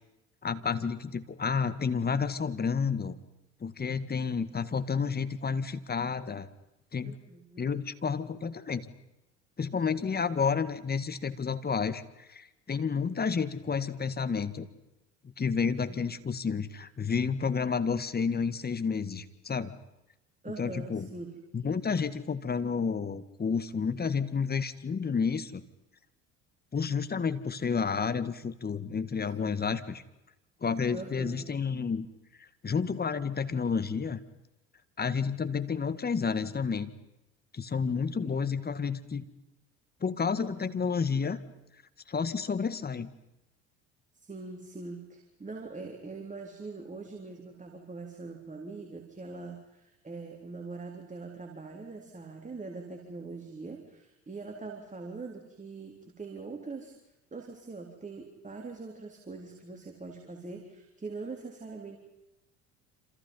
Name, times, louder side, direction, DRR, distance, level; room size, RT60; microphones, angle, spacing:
voice 1, 0.4-3.1 3.6-6.5 6.9-7.2 7.6-8.9 9.6-14.7 15.4-19.7 20.6-21.1 21.5-25.6 26.7-30.0 30.6-32.1 32.4-34.2 35.0-36.9 37.5-39.2 40.0-41.4 42.1-43.1, left 5 dB, 25° left, 12 dB, 1.9 m, -30 dB
voice 2, 7.0-7.7 15.8-16.1 20.4-21.4 29.2-29.3 30.9-31.5 38.2-38.4 40.2-40.5 44.1-56.9 57.3-62.0, right 3 dB, 20° right, 2 dB, 3.9 m, -43 dB
28.0 x 27.0 x 5.6 m, 0.92 s
hypercardioid pair, 65°, 36 cm